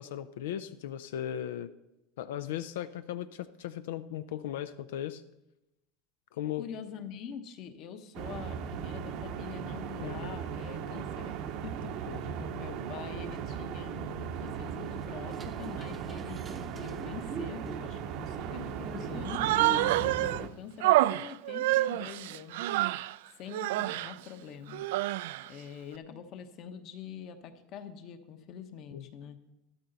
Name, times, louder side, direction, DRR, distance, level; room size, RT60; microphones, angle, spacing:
voice 1, 0.0-1.7 2.2-5.2 6.3-6.7 10.0-10.4 12.1-12.4 28.9-29.1, left 11 dB, 90° left, 12 dB, 0.5 m, -37 dB
voice 2, 6.6-22.8 23.3-24.8 25.4-29.4, left 7 dB, 40° left, 9 dB, 1.0 m, -45 dB
sound 1, 8.1-20.5, right 8 dB, 45° right, 0.8 m, -38 dB
sound 2, 14.3-20.5, right 2 dB, 15° right, 0.7 m, -45 dB
Human voice, 19.2-20.4 20.8-23.1 23.5-24.1 24.7-25.5, right 16 dB, 75° right, 0.3 m, -27 dB
13.0 x 12.5 x 4.0 m, 0.92 s
supercardioid pair, 160°, 0 cm